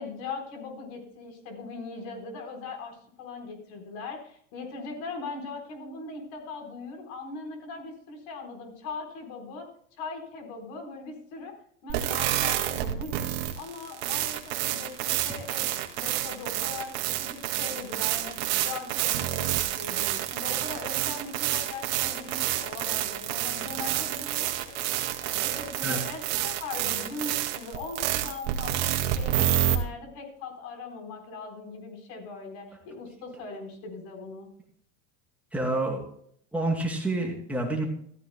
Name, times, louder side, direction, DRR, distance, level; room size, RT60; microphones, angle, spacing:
voice 1, 0.0-9.7 10.0-11.5 11.8-13.2 13.6-15.6 16.0-24.9 25.2-34.5, left 4 dB, 50° left, 4 dB, 4.1 m, -40 dB
sound 1, 11.9-29.8, right 13 dB, 55° right, 2.0 m, -28 dB
voice 2, 35.5-36.0 36.5-37.8, right 2 dB, 5° right, -2 dB, 2.5 m, -28 dB
14.5 x 14.5 x 2.2 m, 0.64 s
supercardioid pair, 160°, 37 cm